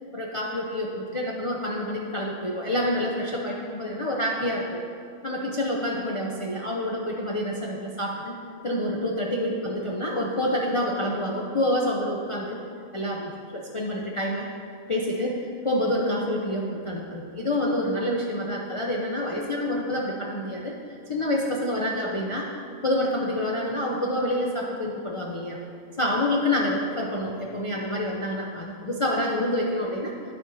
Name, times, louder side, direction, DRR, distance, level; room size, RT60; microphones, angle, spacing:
voice 1, 0.1-4.8 5.2-8.4 8.6-12.6 12.9-14.5 14.9-20.8 21.1-22.6 22.8-25.6 26.0-30.1, left 1 dB, 55° left, -2 dB, 0.3 m, -27 dB
9.6 x 6.3 x 4.1 m, 2.4 s
omnidirectional pair, 1.5 m